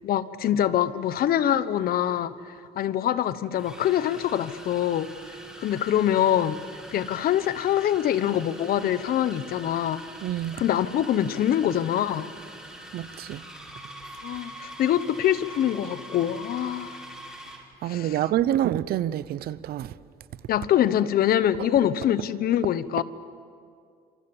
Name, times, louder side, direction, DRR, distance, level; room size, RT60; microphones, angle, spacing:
voice 1, 0.0-5.1 5.6-6.6 6.9-10.0 10.6-12.3 14.2-17.0 17.8-18.2 20.5-23.0, left 11 dB, 60° left, 1.1 m, -24 dB
sound 1, 2.2-2.4 3.5-17.7, right 1 dB, 5° right, 6.1 m, -44 dB
voice 2, 10.2-10.6 12.9-13.4 17.8-19.9, right 12 dB, 65° right, 0.8 m, -27 dB
27.5 x 26.5 x 7.3 m
cardioid pair, 110°, 17 cm